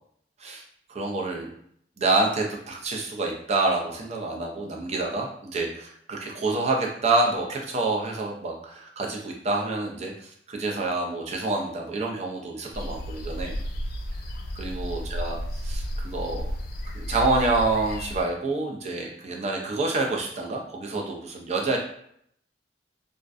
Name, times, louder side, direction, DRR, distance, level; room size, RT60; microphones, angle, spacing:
voice 1, 0.9-1.5 2.0-13.6 14.6-16.5 16.8-21.8, right 2 dB, 40° right, 0 dB, 0.4 m, -27 dB
sound 1, 12.7-18.2, equal, 55° left, 0.3 m, -32 dB
2.5 x 2.1 x 2.4 m, 0.68 s
head